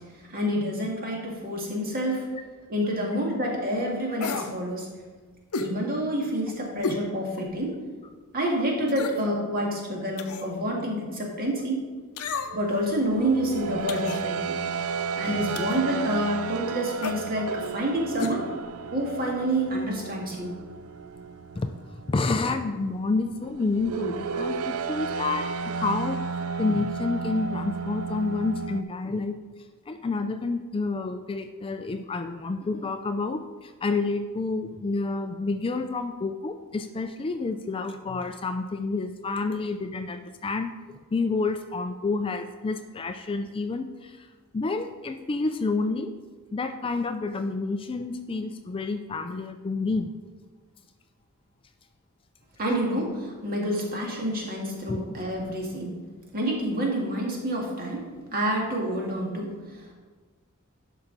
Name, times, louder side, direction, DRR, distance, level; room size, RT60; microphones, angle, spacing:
voice 1, 0.3-2.3 2.7-4.9 5.6-7.8 8.3-11.8 12.5-14.6 15.2-18.5 18.9-20.5 52.6-56.0 56.3-58.0 58.3-59.9, equal, 45° right, -1 dB, 1.8 m, -28 dB
sound 1, 4.2-4.5 5.5-5.7 6.8-7.0 7.5-7.6 8.9-9.3 10.2-10.5 12.2-12.7 13.9-14.2 15.5-15.8 17.0-17.2 18.2-18.4 18.6-18.7, left 4 dB, 90° left, 0.7 m, -32 dB
sound 2, 12.4-28.8, right 5 dB, 70° right, 0.4 m, -33 dB
voice 2, 15.2-15.7 21.6-21.7 22.1-26.2 26.6-29.4 29.9-44.3 44.5-46.1 46.5-50.1 54.9-55.0, left 3 dB, 25° left, 8 dB, 0.4 m, -29 dB
11.5 x 5.5 x 3.9 m, 1.4 s
head